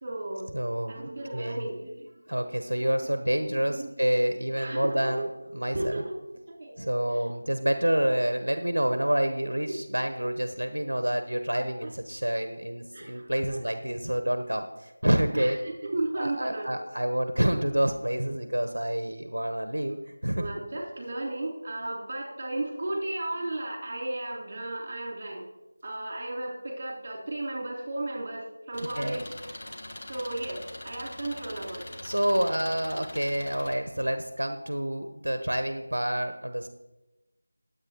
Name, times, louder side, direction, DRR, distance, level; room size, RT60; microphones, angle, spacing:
voice 1, 0.0-0.6 0.9-2.1 2.8-3.1 3.8-3.9 4.5-5.3 5.7-6.2 6.5-6.9 9.7-9.8 11.8-11.9 12.9-13.6 15.3-16.7 20.3-25.5 25.8-29.4 30.1-32.0, right 2 dB, 35° right, -3 dB, 3.5 m, -34 dB
voice 2, 0.5-0.9 1.3-1.7 2.3-5.3 5.5-6.0 6.8-15.6 16.2-20.5 29.0-29.3 32.0-36.7, equal, 85° right, 7 dB, 1.0 m, -28 dB
Engine, 28.7-33.7, left 1 dB, 40° left, 1.5 m, -42 dB
19.5 x 8.3 x 3.0 m, 1.0 s
figure-of-eight pair, 170°, 0 cm